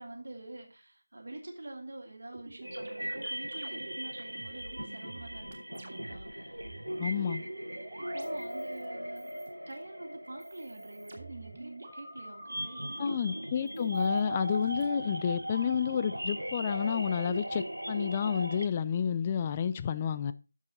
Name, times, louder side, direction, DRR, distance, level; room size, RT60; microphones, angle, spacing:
voice 1, 0.0-6.4 8.0-14.0, right 2 dB, 60° right, 2.1 m, -46 dB
sound 1, 2.3-6.3 6.5-8.9 9.2-9.8 10.3-13.0 13.7-14.9, right 2 dB, 35° right, 2.7 m, -48 dB
sound 2, 2.6-18.7, equal, 90° right, 1.4 m, -38 dB
voice 2, 7.0-7.4 13.0-20.3, left 7 dB, 20° left, 0.4 m, -30 dB
9.6 x 7.3 x 4.2 m
figure-of-eight pair, 165°, 0 cm